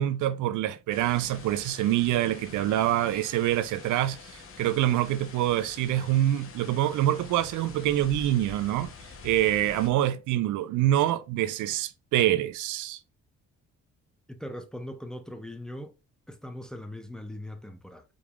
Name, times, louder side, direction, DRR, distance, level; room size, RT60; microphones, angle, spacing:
voice 1, 0.0-8.9 9.2-13.0, right 13 dB, 80° right, 0.5 m, -26 dB
sound 1, 0.9-9.9, left 4 dB, 45° left, 1.1 m, -47 dB
voice 2, 14.3-15.9 16.3-18.0, left 1 dB, ahead, 0.7 m, -40 dB
5.1 x 3.4 x 2.4 m
cardioid pair, 90°, 30 cm